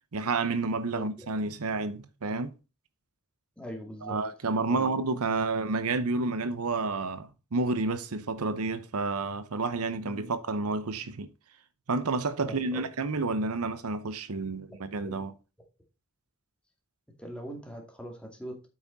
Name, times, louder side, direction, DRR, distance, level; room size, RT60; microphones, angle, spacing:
voice 1, 0.1-2.5 4.0-11.3 11.9-15.3, right 3 dB, 85° right, 0.8 m, -30 dB
voice 2, 3.6-4.2 4.7-4.9 10.1-10.3 12.4-12.8 15.0-15.2 17.2-18.7, equal, 5° left, 2.4 m, -41 dB
8.4 x 6.0 x 4.1 m
head